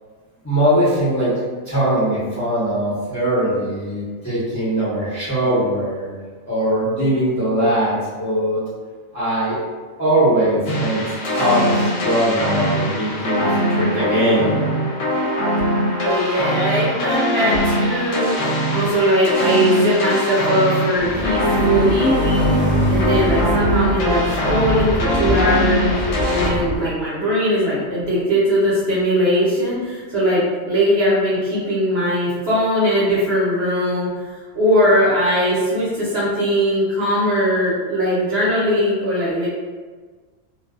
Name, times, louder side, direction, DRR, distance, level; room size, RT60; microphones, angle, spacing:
voice 1, 0.4-1.3 1.7-6.1 6.5-8.7 9.1-9.6 10.0-11.0 11.4-14.5, right 1 dB, 20° left, -11 dB, 0.6 m, -20 dB
sound 1, 10.7-26.5, equal, 70° left, 0.9 m, -22 dB
voice 2, 16.0-22.5 22.9-34.1 34.5-39.5, equal, 60° right, -8 dB, 0.8 m, -20 dB
sound 2, 21.0-26.8, equal, 25° right, 0.7 m, -23 dB
2.4 x 2.2 x 2.3 m, 1.4 s
omnidirectional pair, 1.4 m